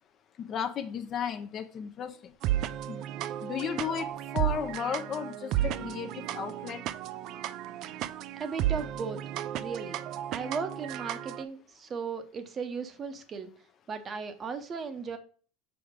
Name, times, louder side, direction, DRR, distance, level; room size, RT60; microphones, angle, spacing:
voice 1, 0.4-2.2 2.9-3.0 3.4-6.8, left 7 dB, 35° left, 0.5 m, -34 dB
sound 1, 2.4-11.4, right 12 dB, 50° right, 0.3 m, -33 dB
voice 2, 8.3-9.2 9.6-10.0 10.3-13.5 13.9-15.2, right 5 dB, 25° right, 0.8 m, -36 dB
6.0 x 4.9 x 3.6 m
supercardioid pair, 135°, 0 cm